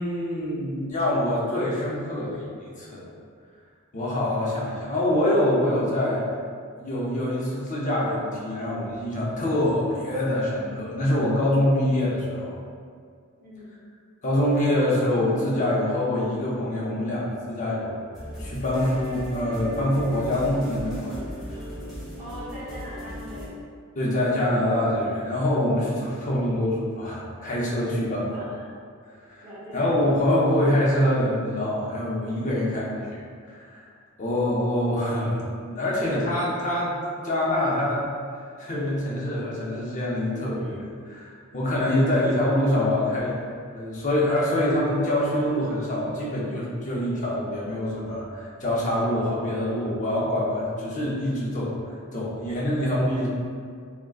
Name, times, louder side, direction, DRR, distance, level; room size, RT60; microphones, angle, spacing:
voice 1, 0.0-2.4 2.8-3.0 3.9-6.2 6.8-12.5 14.2-18.0 18.4-21.2 24.0-28.2 29.3-29.4 29.7-33.1 33.5-33.8 34.2-37.0 37.2-38.1 38.6-43.4 43.7-51.7 52.1-53.3, left 1 dB, 35° left, -5 dB, 0.5 m, -25 dB
voice 2, 13.4-13.7 22.2-23.6 27.9-28.7 29.4-29.8, equal, 40° right, -8 dB, 0.9 m, -41 dB
sound 1, 18.1-23.5, equal, ahead, 0.8 m, -37 dB
3.4 x 2.1 x 2.3 m, 2.1 s
head